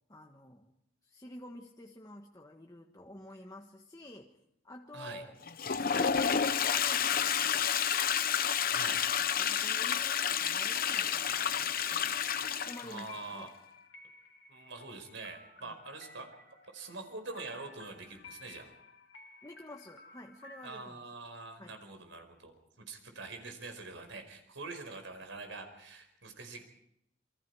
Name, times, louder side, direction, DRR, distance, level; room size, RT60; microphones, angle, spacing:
voice 1, 0.1-0.7 1.0-4.3 4.6-5.3 6.6-7.8 9.2-12.2 12.6-13.5 15.6-15.8 19.4-21.0 21.6-21.8, left 1 dB, 20° left, 0 dB, 1.4 m, -50 dB
voice 2, 4.9-5.2 8.7-9.1 12.8-13.5 14.5-16.3 16.7-18.7 20.6-26.6, right 3 dB, 75° right, 6 dB, 5.1 m, -45 dB
Toilet flush, 5.4-13.1, left 8 dB, 50° left, 1.0 m, -30 dB
sound 1, 10.1-20.8, left 3 dB, 80° left, 3.4 m, -55 dB
28.0 x 24.5 x 4.9 m, 0.75 s
head